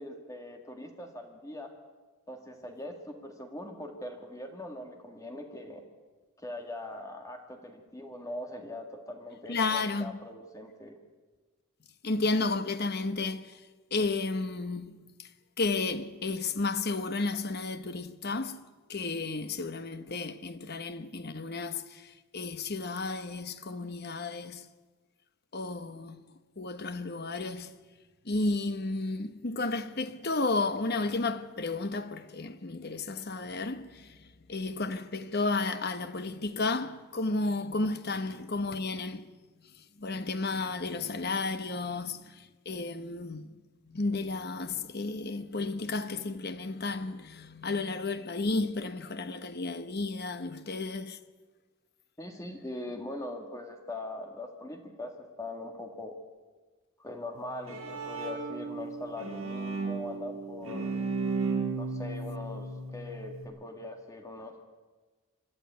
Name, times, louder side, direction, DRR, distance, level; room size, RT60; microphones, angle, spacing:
voice 1, 0.0-1.7 2.3-5.8 6.4-11.0 52.2-56.2 57.0-60.9 61.7-64.6, left 1 dB, 15° left, 1.9 m, -41 dB
voice 2, 9.5-10.1 12.0-13.5 13.9-14.9 15.6-18.6 18.9-21.8 22.3-24.6 25.5-26.2 26.6-27.7 28.3-34.0 34.5-39.3 40.0-42.2 42.7-43.6 43.9-51.2, left 3 dB, 45° left, 1.1 m, -32 dB
Bowed string instrument, 57.4-63.4, right 4 dB, 70° right, 5.6 m, -35 dB
25.5 x 12.5 x 9.3 m
head